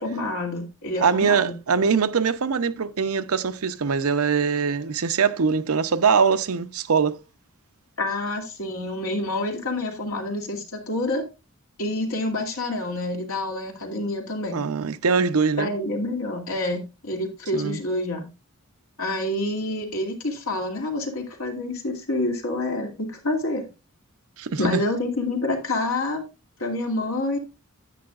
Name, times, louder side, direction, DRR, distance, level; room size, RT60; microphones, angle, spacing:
voice 1, 0.0-1.5 8.0-11.2 11.8-14.6 15.6-18.3 19.0-23.7 24.6-26.2 26.6-27.4, left 2 dB, 80° left, 2.5 m, -27 dB
voice 2, 1.0-7.2 14.5-15.7 17.5-17.8 24.4-24.8, right 5 dB, 85° right, 0.7 m, -22 dB
11.0 x 8.7 x 2.4 m
head